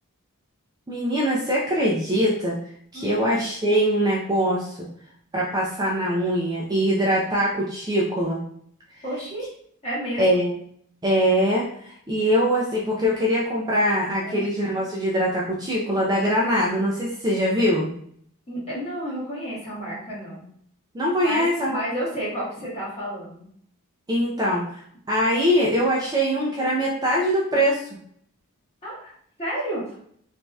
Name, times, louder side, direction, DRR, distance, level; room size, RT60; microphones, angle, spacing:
voice 1, 0.9-2.6 2.9-4.9 5.3-8.4 10.2-10.6 11.0-17.9 20.9-21.8 24.1-24.8 25.1-27.9, equal, 15° right, -4 dB, 0.4 m, -22 dB
voice 2, 2.9-3.3 9.0-9.5 9.8-10.4 14.2-14.5 18.5-20.5 21.2-23.5 28.8-29.1 29.4-29.8, equal, 30° left, -8 dB, 1.4 m, -31 dB
3.1 x 2.7 x 2.3 m, 0.63 s
head